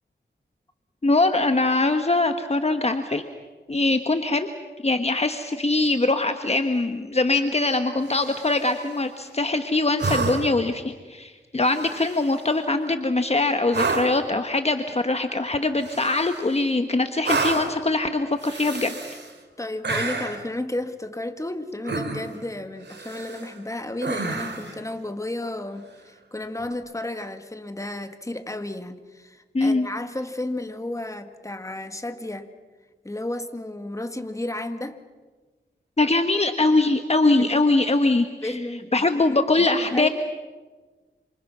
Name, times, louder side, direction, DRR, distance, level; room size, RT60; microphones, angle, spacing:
voice 1, 1.0-3.2 3.7-4.5 4.8-19.0 29.5-29.9 36.0-38.6 38.9-40.1, left 2 dB, 35° left, 7 dB, 1.3 m, -22 dB
sound 1, 8.0-8.8 10.0-10.7 11.7-12.4 13.7-14.3 15.8-16.6 17.2-17.8 18.4-19.3 19.8-20.5 21.8-22.4 22.9-23.5 24.0-24.8 26.6-26.7, right 3 dB, 70° right, 2.9 m, -29 dB
voice 2, 19.6-32.5 33.0-35.0 37.4-37.6 38.4-40.1, left 1 dB, 15° left, 8 dB, 1.8 m, -33 dB
28.5 x 26.5 x 6.1 m, 1.3 s
wide cardioid pair, 65°, 19 cm